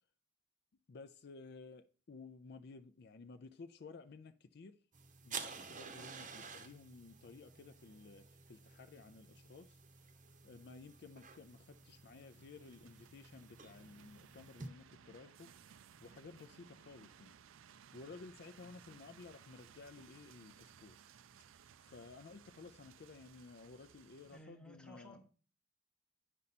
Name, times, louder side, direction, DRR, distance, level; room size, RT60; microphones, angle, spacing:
voice 1, 0.9-4.8 5.2-9.8 10.4-15.7 16.0-17.4 17.9-21.0 21.8-25.3, left 4 dB, 50° left, 0.4 m, -55 dB
sound 1, 4.9-14.7, right 5 dB, 40° right, 0.8 m, -52 dB
sound 2, 9.2-24.4, right 7 dB, 75° right, 0.4 m, -62 dB
voice 2, 24.3-25.3, left 1 dB, 5° left, 0.9 m, -56 dB
9.8 x 5.4 x 4.2 m
head